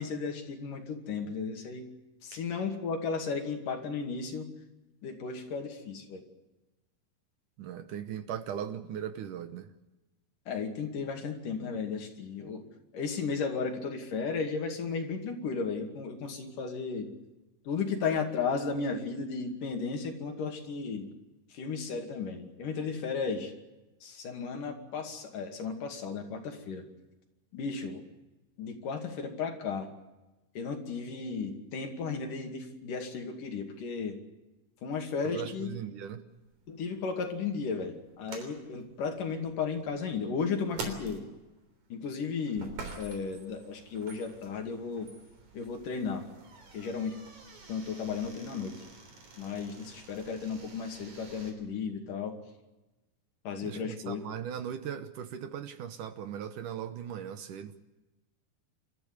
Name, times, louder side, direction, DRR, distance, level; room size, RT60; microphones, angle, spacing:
voice 1, 0.0-1.9 2.2-4.5 5.0-6.2 10.5-12.6 12.9-17.1 17.7-21.1 21.5-23.5 24.0-26.8 27.5-28.0 28.6-29.9 30.6-34.2 34.8-35.7 36.7-41.2 41.9-42.7 43.0-45.1 45.5-46.3 46.7-47.2 47.7-48.7 49.4-52.4 53.5-54.2, left 5 dB, 55° left, 4 dB, 3.8 m, -34 dB
voice 2, 7.6-9.7 35.2-36.2 53.6-57.7, right 9 dB, 70° right, 9 dB, 2.2 m, -38 dB
sound 1, 36.3-51.5, right 4 dB, 50° right, 4.6 m, -48 dB
27.5 x 14.0 x 9.7 m, 1.1 s
omnidirectional pair, 4.6 m